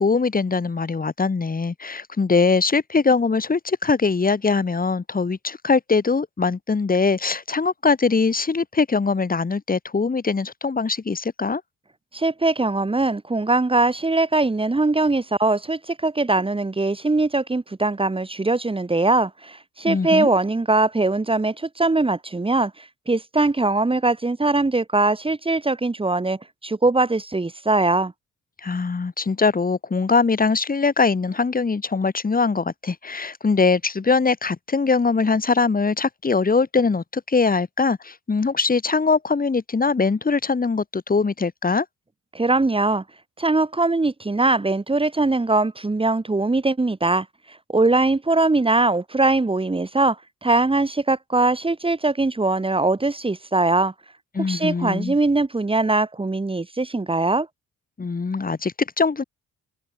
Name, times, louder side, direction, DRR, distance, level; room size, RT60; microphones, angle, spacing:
voice 1, 0.0-11.6 19.9-20.3 28.6-41.9 54.3-55.2 58.0-59.2, left 4 dB, 30° left, 3.7 m, -22 dB
voice 2, 12.1-28.1 42.3-43.0 43.4-50.2 50.4-53.9 54.5-57.5, right 2 dB, 20° right, 2.6 m, -21 dB
cardioid pair, 90°, 30 cm